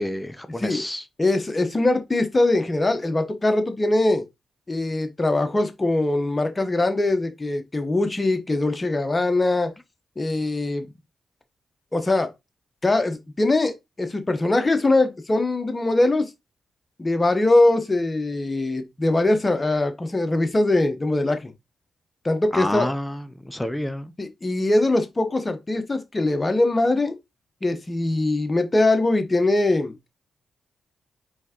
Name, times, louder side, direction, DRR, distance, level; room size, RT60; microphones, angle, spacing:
voice 1, 0.0-1.0 22.5-24.1, left 1 dB, 10° left, 0.6 m, -29 dB
voice 2, 1.2-4.2 4.7-9.7 10.2-10.9 11.9-12.3 12.8-16.3 17.0-21.5 22.2-22.9 24.2-27.1 27.6-29.9, left 2 dB, 30° left, 1.0 m, -22 dB
4.4 x 3.4 x 2.9 m
supercardioid pair, 40°, 0 cm